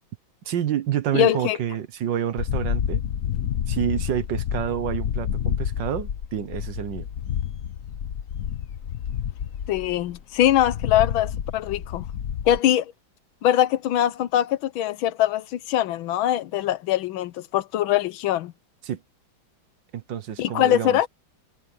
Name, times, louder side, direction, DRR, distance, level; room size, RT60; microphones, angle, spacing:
voice 1, 0.4-3.0 3.7-7.1 18.8-19.0 19.9-21.0, right 10 dB, 70° right, 1.7 m, -28 dB
voice 2, 1.1-1.6 9.7-12.0 12.5-12.9 13.4-18.5 20.4-21.1, left 12 dB, 85° left, 1.6 m, -22 dB
sound 1, 2.4-12.6, left 9 dB, 55° left, 1.1 m, -29 dB
omnidirectional pair, 2.1 m